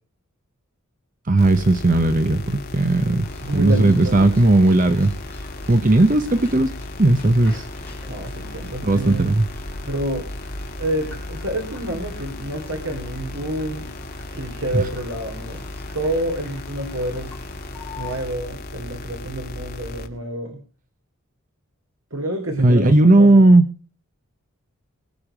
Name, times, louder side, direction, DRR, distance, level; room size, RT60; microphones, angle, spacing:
voice 1, 1.2-6.7 7.0-7.7 8.8-9.5 14.7-14.9 22.6-23.6, right 2 dB, 40° right, 10 dB, 0.9 m, -16 dB
sound 1, 1.4-20.1, left 2 dB, 45° left, 2.0 m, -35 dB
sound 2, 3.2-18.4, left 2 dB, 10° left, 5.9 m, -44 dB
voice 2, 3.4-4.3 8.1-9.3 9.8-10.3 10.8-13.9 14.3-15.6 15.9-17.3 17.9-20.6 22.1-23.4, right 1 dB, 70° right, 4 dB, 3.2 m, -28 dB
21.0 x 9.2 x 5.0 m, 0.37 s
head